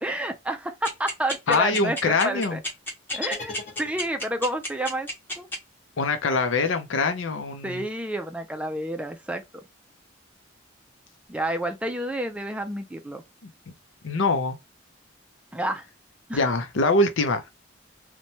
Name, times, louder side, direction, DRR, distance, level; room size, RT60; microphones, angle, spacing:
voice 1, 0.0-2.6 3.1-5.1 5.4-5.5 7.6-9.6 11.3-13.2 15.5-15.9 16.3-16.5, right 1 dB, 5° right, 0.3 m, -30 dB
sound 1, 0.8-5.5, left 1 dB, 10° left, 0.9 m, -30 dB
voice 2, 1.5-2.6 6.0-7.8 14.0-14.6 16.3-17.4, left 3 dB, 80° left, 0.5 m, -23 dB
sound 2, 3.1-4.4, left 5 dB, 35° left, 1.1 m, -37 dB
3.0 x 2.2 x 2.6 m
head